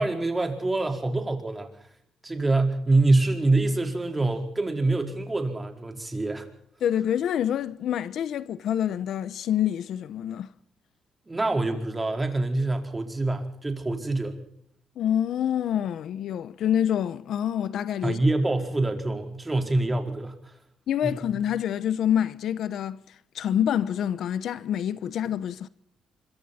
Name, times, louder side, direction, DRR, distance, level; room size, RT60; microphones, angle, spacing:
voice 1, 0.0-1.7 2.2-6.5 11.3-14.4 18.0-20.5 21.0-21.2, right 2 dB, 20° right, 4.6 m, -25 dB
voice 2, 6.8-10.5 15.0-18.2 20.9-23.0 23.3-25.7, left 10 dB, 70° left, 0.9 m, -27 dB
25.5 x 24.0 x 4.4 m
cardioid pair, 90°, 0 cm